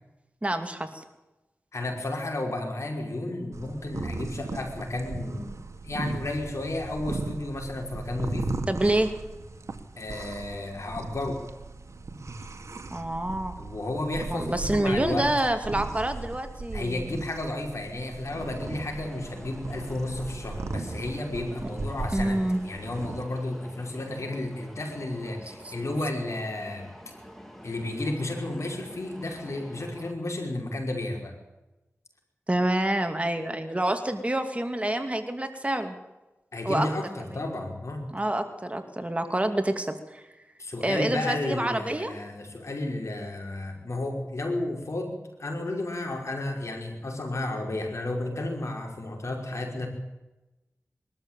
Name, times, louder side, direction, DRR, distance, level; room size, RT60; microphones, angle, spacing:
voice 1, 0.4-1.0 8.7-9.1 12.9-13.5 14.3-17.1 22.1-22.6 25.6-25.7 32.5-35.9 36.6-36.9 38.1-40.2 40.8-42.1, right 1 dB, 25° right, 7 dB, 2.6 m, -27 dB
voice 2, 1.7-5.6 5.8-8.5 10.0-11.4 13.6-15.3 16.7-26.9 27.6-31.3 36.5-38.1 40.6-49.9, left 2 dB, 70° left, 2 dB, 5.4 m, -32 dB
sound 1, 3.5-23.2, right 3 dB, 75° right, 1.9 m, -37 dB
sound 2, 18.2-30.1, equal, 5° left, 3.8 m, -47 dB
22.5 x 13.0 x 9.1 m, 1.0 s
wide cardioid pair, 50°, 5 cm